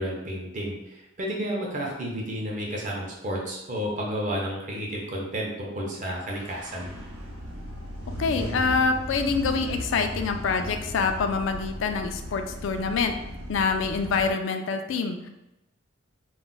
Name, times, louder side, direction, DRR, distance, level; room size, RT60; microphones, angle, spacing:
voice 1, 0.0-6.9, equal, 40° right, -2 dB, 0.6 m, -31 dB
sound 1, 6.3-14.3, equal, 85° right, 0.7 m, -36 dB
voice 2, 8.2-13.2 13.5-15.3, left 4 dB, 65° left, 6 dB, 0.3 m, -26 dB
2.3 x 2.1 x 3.8 m, 0.93 s
head